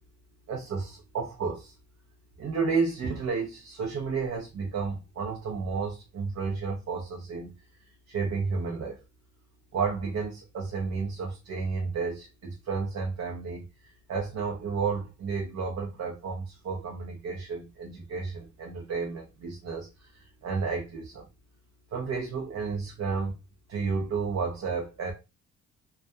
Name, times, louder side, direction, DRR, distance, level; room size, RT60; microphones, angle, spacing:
voice 1, 0.5-1.7 2.4-7.5 8.1-9.0 9.7-13.6 14.1-19.9 20.4-21.2 21.9-23.3 23.7-25.1, right 5 dB, 55° right, 0.7 m, -31 dB
2.3 x 2.2 x 2.6 m
cardioid pair, 90°, 30 cm